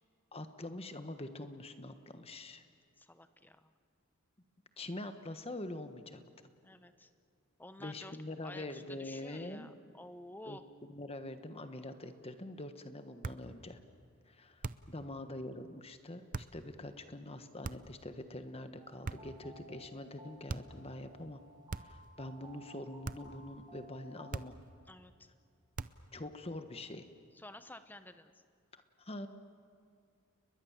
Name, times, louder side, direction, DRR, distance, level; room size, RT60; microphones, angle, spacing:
voice 1, 0.3-2.6 4.8-6.2 7.8-9.7 10.5-13.8 14.3-21.4 21.8-24.5 26.1-27.1 29.0-29.3, left 1 dB, 25° left, 9 dB, 1.3 m, -44 dB
voice 2, 3.0-3.7 6.6-7.1 7.6-8.2 8.4-10.7 24.9-25.3 27.3-28.4, left 1 dB, 10° left, 10 dB, 0.9 m, -52 dB
sound 1, 13.2-13.5 14.6-15.0 16.3-16.6 17.6-18.0 19.0-19.4 20.5-20.8 21.7-22.1 23.0-23.4 24.3-24.7 25.7-26.1, right 3 dB, 40° right, 0.6 m, -42 dB
sound 2, 18.8-24.3, equal, 20° right, 4.0 m, -57 dB
30.0 x 21.5 x 7.4 m, 2.4 s
head